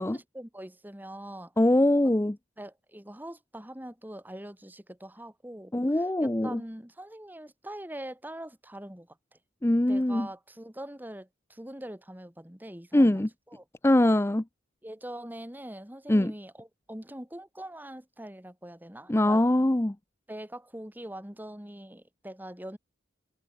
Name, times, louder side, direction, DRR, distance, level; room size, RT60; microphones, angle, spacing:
voice 1, 0.0-1.5 2.6-9.1 9.8-13.2 13.5-13.6 14.8-19.4 20.3-22.8, right 1 dB, 10° right, 1.9 m, -43 dB
voice 2, 1.6-2.4 5.7-6.6 9.6-10.3 12.9-13.3 13.8-14.4 16.1-16.3 19.1-19.9, left 1 dB, 10° left, 0.5 m, -22 dB
head